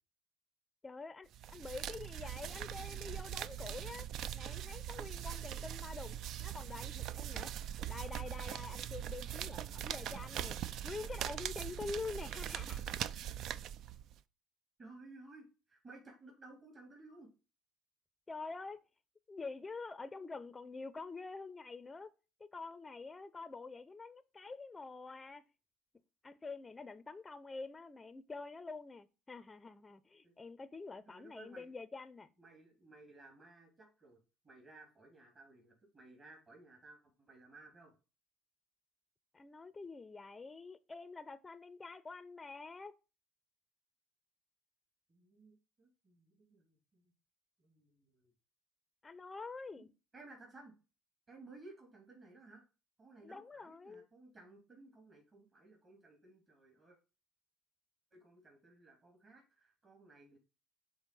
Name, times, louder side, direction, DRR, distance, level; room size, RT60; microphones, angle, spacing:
voice 1, 0.8-4.1 4.3-7.5 7.9-10.6 10.8-13.0 18.3-18.8 19.3-22.1 22.4-25.5 26.2-32.3 39.3-43.0 49.0-49.9 53.2-54.1, left 4 dB, 20° left, 0.5 m, -47 dB
sound 1, 1.3-14.2, right 10 dB, 60° right, 0.4 m, -41 dB
voice 2, 14.8-17.3 30.2-30.3 31.1-31.7 32.4-37.9 45.1-47.1 47.6-48.3 49.8-49.9 50.1-50.8 51.3-52.6 53.0-57.0 58.1-60.4, right 2 dB, 35° right, 3.0 m, -58 dB
6.2 x 3.4 x 5.3 m
hypercardioid pair, 70°, 0 cm